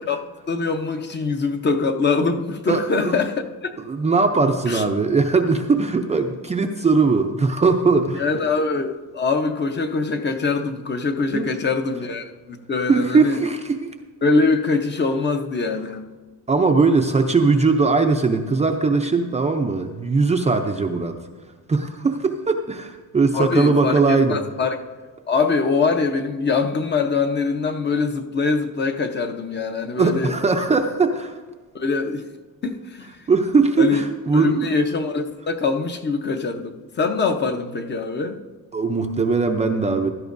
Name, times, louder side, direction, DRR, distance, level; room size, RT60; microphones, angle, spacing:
voice 1, 0.5-3.3 3.6-3.7 4.7-4.8 8.1-13.4 14.2-16.0 23.3-24.8 25.3-30.3 31.7-32.2 32.6-33.1 33.8-34.0 34.3-38.4, left 4 dB, 30° left, 6 dB, 0.7 m, -23 dB
voice 2, 2.7-3.2 3.8-8.2 11.3-11.6 12.9-13.9 16.5-21.2 21.7-24.4 30.0-31.4 33.3-34.7 38.7-40.1, right 4 dB, 20° right, 4 dB, 0.5 m, -20 dB
16.0 x 12.5 x 2.6 m, 1.4 s
cardioid pair, 170°, 35 cm